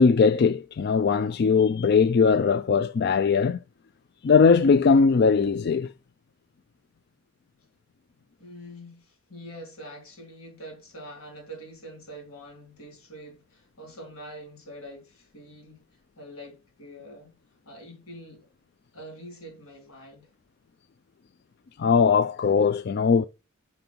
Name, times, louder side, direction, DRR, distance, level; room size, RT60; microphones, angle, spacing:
voice 1, 0.0-3.6 4.2-5.9 21.8-23.2, left 5 dB, 50° left, 0.3 m, -20 dB
voice 2, 8.4-15.8 16.2-17.4 17.7-18.5 18.9-20.3, equal, 85° left, 3.7 m, -44 dB
5.8 x 5.3 x 6.0 m
head